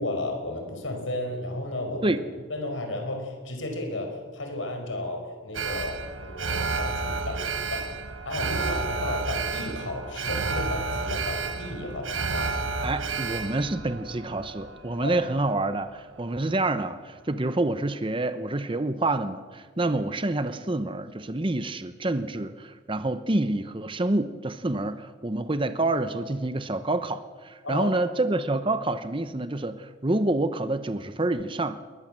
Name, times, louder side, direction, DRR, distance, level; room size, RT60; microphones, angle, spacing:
voice 1, 0.0-2.1 2.5-7.9 8.2-12.5 15.0-15.2 27.6-27.9, left 1 dB, 75° left, 4 dB, 5.2 m, -33 dB
Alarm, 5.5-15.8 16.2-16.3, right 4 dB, 80° right, 1.4 m, -31 dB
voice 2, 12.8-31.8, right 2 dB, 25° right, 11 dB, 0.8 m, -27 dB
21.5 x 19.5 x 7.6 m, 1.5 s
head